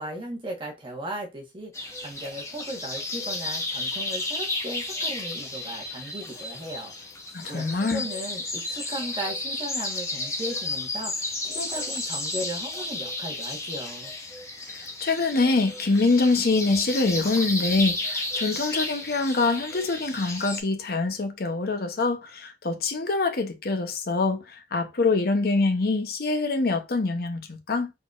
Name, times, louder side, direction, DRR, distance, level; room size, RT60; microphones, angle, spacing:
voice 1, 0.0-6.9 7.5-14.1, right 1 dB, 30° right, 1.3 m, -36 dB
sound 1, 1.7-20.6, left 2 dB, 15° left, 1.1 m, -33 dB
voice 2, 7.3-8.0 14.7-27.9, left 3 dB, 60° left, 0.8 m, -25 dB
4.0 x 4.0 x 2.4 m
head